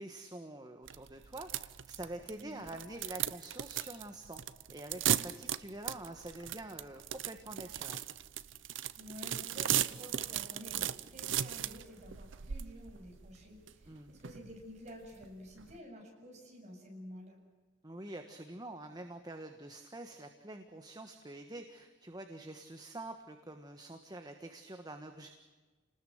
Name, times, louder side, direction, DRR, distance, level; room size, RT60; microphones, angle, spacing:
voice 1, 0.0-4.4 4.7-8.0 13.9-14.1 17.8-25.3, right 1 dB, 20° right, 5 dB, 1.5 m, -46 dB
sound 1, 0.9-15.8, right 10 dB, 65° right, 0.8 m, -37 dB
voice 2, 2.3-2.7 9.0-17.4, equal, 35° right, 0 dB, 7.7 m, -50 dB
29.0 x 20.0 x 7.9 m, 1.3 s
head